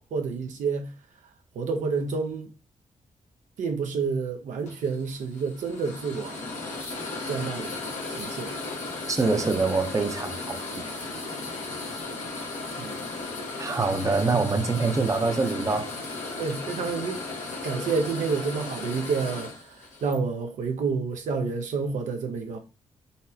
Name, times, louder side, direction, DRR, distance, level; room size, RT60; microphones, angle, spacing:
voice 1, 0.1-0.9 1.6-2.5 3.6-6.5 7.3-7.7 8.1-8.5 12.8-12.9 14.3-14.4 16.4-17.2 17.6-19.5 20.0-22.6, right 5 dB, 80° right, 0.6 m, -29 dB
sound 1, 4.7-20.2, left 3 dB, 80° left, 1.1 m, -35 dB
voice 2, 9.1-10.8 13.6-15.9, right 3 dB, 25° right, 0.6 m, -25 dB
4.0 x 2.0 x 2.7 m
cardioid pair, 55°, 13 cm